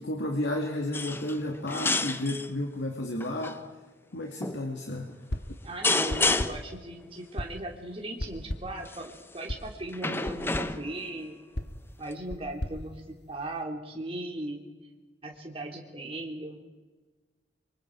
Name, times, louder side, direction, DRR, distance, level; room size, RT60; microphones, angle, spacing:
voice 1, 0.0-3.6 4.1-5.1, left 1 dB, 85° left, 1 dB, 2.3 m, -32 dB
sound 1, 0.9-1.4 1.7-2.5 3.2-3.6 4.4-4.6 5.8-6.7 8.8-9.2 9.9-11.0 12.1-12.2, left 3 dB, 15° left, 0.7 m, -29 dB
sound 2, 5.3-5.7 6.1-6.7 7.4-7.7 8.2-8.8 9.5-9.7 10.2-10.8 11.5-13.6, left 1 dB, 65° left, 1.3 m, -37 dB
voice 2, 5.6-11.4 12.0-14.6 15.2-16.6, right 1 dB, 30° right, 1 dB, 3.1 m, -38 dB
25.5 x 25.0 x 4.7 m, 1.3 s
head